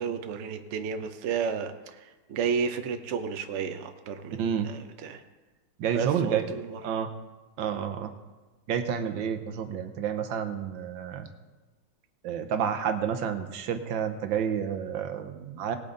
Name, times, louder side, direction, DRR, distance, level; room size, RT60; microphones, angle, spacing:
voice 1, 0.0-5.2 5.9-6.8 7.7-7.8, right 6 dB, 55° right, 7 dB, 0.9 m, -32 dB
voice 2, 4.4-4.7 5.8-6.4 6.8-7.1 7.6-8.1 8.7-11.3 12.2-15.8, right 8 dB, 80° right, 8 dB, 1.6 m, -29 dB
18.5 x 8.7 x 3.9 m, 1.2 s
omnidirectional pair, 2.1 m